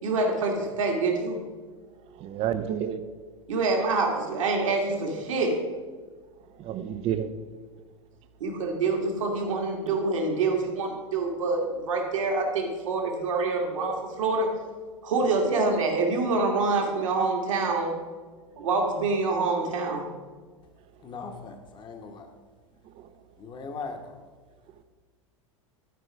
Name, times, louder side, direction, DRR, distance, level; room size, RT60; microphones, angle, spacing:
voice 1, 0.0-1.4 3.5-5.6 8.4-14.5 15.0-17.9 18.6-20.0, right 3 dB, 70° right, 1 dB, 1.8 m, -26 dB
voice 2, 2.1-3.0 6.6-7.3 22.8-23.1, right 9 dB, 35° right, 11 dB, 0.6 m, -30 dB
voice 3, 21.0-22.3 23.4-24.2, left 4 dB, 25° left, 4 dB, 1.2 m, -39 dB
13.0 x 4.9 x 4.7 m, 1.5 s
figure-of-eight pair, 85°, 17 cm